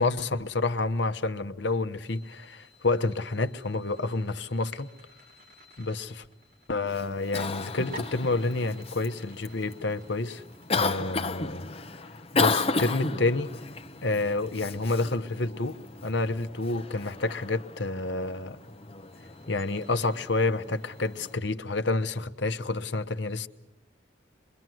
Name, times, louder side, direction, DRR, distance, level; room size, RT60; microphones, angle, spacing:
voice 1, 0.0-4.9 5.8-6.3 6.7-10.4 10.7-11.7 12.3-13.5 14.0-18.6 19.5-23.5, left 3 dB, 65° left, 1.0 m, -29 dB
sound 1, 2.0-21.8, equal, 50° right, 4.4 m, -54 dB
Cough, 6.9-21.3, left 3 dB, 30° left, 0.9 m, -34 dB
26.0 x 22.5 x 7.8 m
head